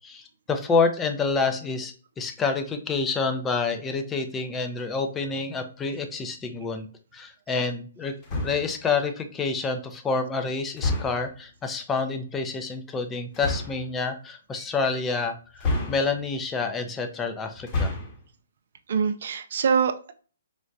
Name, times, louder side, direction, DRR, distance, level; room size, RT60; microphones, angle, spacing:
voice 1, 0.0-6.9 7.1-8.1 8.4-17.9, left 4 dB, 15° left, 5 dB, 0.5 m, -28 dB
sound 1, 8.2-8.8 10.8-11.4 13.3-13.9 15.6-16.4 17.6-18.3, left 2 dB, 30° left, 0.9 m, -29 dB
voice 2, 18.9-20.1, right 6 dB, 60° right, 10 dB, 0.4 m, -24 dB
4.6 x 2.1 x 2.5 m, 0.39 s
hypercardioid pair, 135°, 0 cm